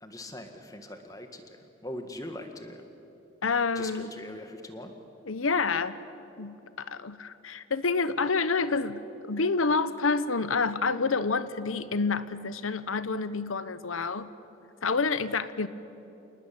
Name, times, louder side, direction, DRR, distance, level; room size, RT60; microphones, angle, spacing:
voice 1, 0.0-2.8 3.7-4.9, left 1 dB, 15° left, 6 dB, 1.8 m, -41 dB
voice 2, 3.4-4.1 5.3-6.0 6.4-14.3 14.8-15.7, left 4 dB, 90° left, 14 dB, 1.0 m, -28 dB
27.5 x 19.5 x 8.7 m, 3.0 s
head